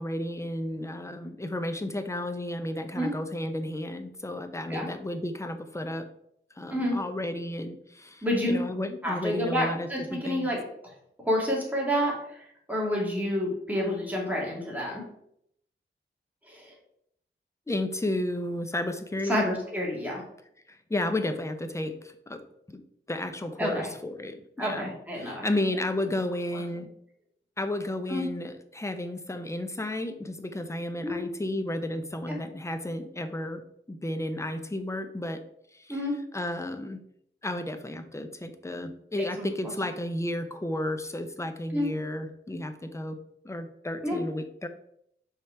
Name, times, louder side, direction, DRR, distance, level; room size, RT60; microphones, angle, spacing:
voice 1, 0.0-6.1 6.6-10.5 17.7-19.5 20.7-22.4 22.7-22.8 23.1-24.9 25.2-26.9 27.6-33.6 33.9-35.4 35.8-36.0 36.3-37.0 37.4-43.2 43.4-44.7, left 1 dB, 15° left, 8 dB, 0.6 m, -32 dB
voice 2, 8.2-8.7 9.0-10.6 11.2-15.0 16.5-16.7 19.2-20.2 23.6-23.9 24.6-25.5 26.5-26.6 28.1-28.3 31.0-31.2 32.3-32.4 35.9-36.1 39.4-39.7 41.7-41.9 44.0-44.2, equal, 5° right, -3 dB, 2.3 m, -29 dB
5.3 x 4.4 x 4.5 m, 0.72 s
wide cardioid pair, 100°, 21 cm